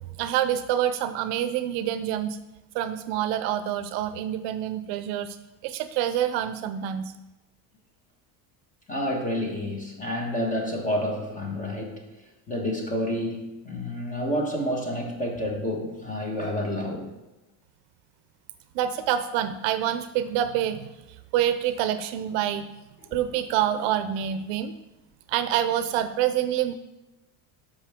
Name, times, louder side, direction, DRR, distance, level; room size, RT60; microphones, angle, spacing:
voice 1, 0.2-2.4 2.7-5.4 5.6-7.1 18.7-20.9 21.3-22.7 23.1-24.7 25.3-26.7, right 10 dB, 65° right, 11 dB, 0.6 m, -26 dB
voice 2, 8.9-12.1 12.5-17.1, left 1 dB, 15° left, 0 dB, 1.3 m, -29 dB
13.5 x 5.2 x 3.5 m, 1.0 s
cardioid pair, 170°, 50 cm